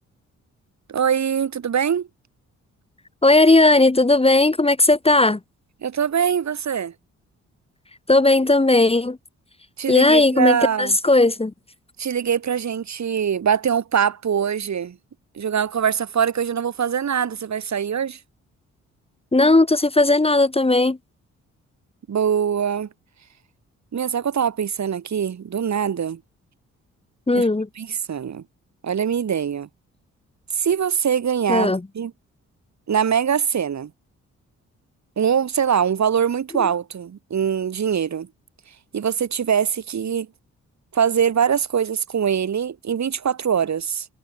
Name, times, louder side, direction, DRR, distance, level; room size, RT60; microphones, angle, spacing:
voice 1, 0.9-2.1 5.8-6.9 9.8-11.0 12.0-15.0 15.3-18.2 22.1-22.9 23.9-26.2 27.3-27.5 27.8-28.4 28.8-29.7 30.5-32.1 32.9-33.9 35.2-38.3 38.7-40.3 40.9-44.1, right 8 dB, 60° right, 3.8 m, -23 dB
voice 2, 3.2-5.4 8.1-9.2 9.9-11.5 19.3-21.0 27.3-27.7 31.5-31.8, left 2 dB, 20° left, 1.9 m, -16 dB
supercardioid pair, 60°, 31 cm